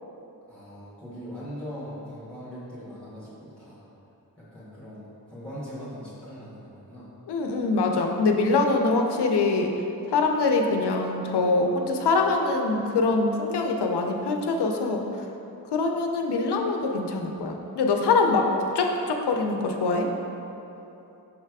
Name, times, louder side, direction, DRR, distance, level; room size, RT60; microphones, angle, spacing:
voice 1, 0.5-3.8 4.4-7.1, equal, 5° left, -10 dB, 1.5 m, -40 dB
voice 2, 7.3-9.7 10.1-15.0 15.7-18.5 18.7-20.1, left 3 dB, 80° left, 2 dB, 0.6 m, -24 dB
6.2 x 3.3 x 4.7 m, 3.0 s
wide cardioid pair, 70°, 39 cm